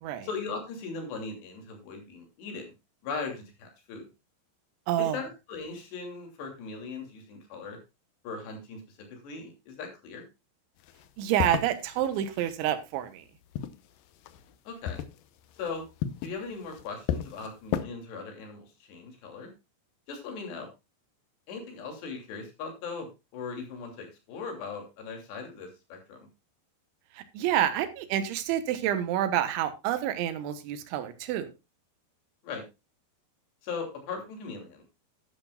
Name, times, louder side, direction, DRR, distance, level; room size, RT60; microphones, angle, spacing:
voice 1, 0.2-2.7 3.0-4.1 5.0-7.8 8.2-10.2 14.7-15.0 15.6-15.8 16.2-19.5 20.1-20.7 21.5-26.3 32.4-32.6 33.6-34.8, left 4 dB, 70° left, 3 dB, 4.8 m, -39 dB
voice 2, 4.9-5.2 11.2-13.3 27.2-31.5, right 11 dB, 90° right, 11 dB, 3.5 m, -28 dB
sound 1, 10.8-12.7 13.3-14.6 14.8-17.8, left 10 dB, 85° left, 1.9 m, -34 dB
12.0 x 11.5 x 2.3 m, 0.25 s
omnidirectional pair, 5.2 m